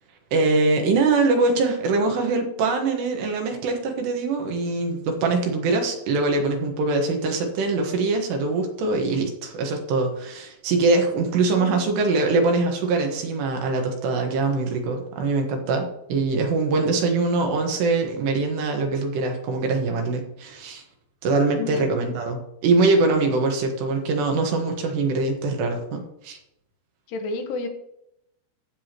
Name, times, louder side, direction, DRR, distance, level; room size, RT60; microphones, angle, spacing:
voice 1, 0.3-20.8 21.2-26.4, right 3 dB, 80° right, 3 dB, 3.6 m, -23 dB
voice 2, 11.5-12.0 21.6-21.9 27.1-27.7, left 3 dB, 80° left, 5 dB, 3.2 m, -31 dB
14.5 x 7.1 x 3.0 m, 0.80 s
omnidirectional pair, 4.8 m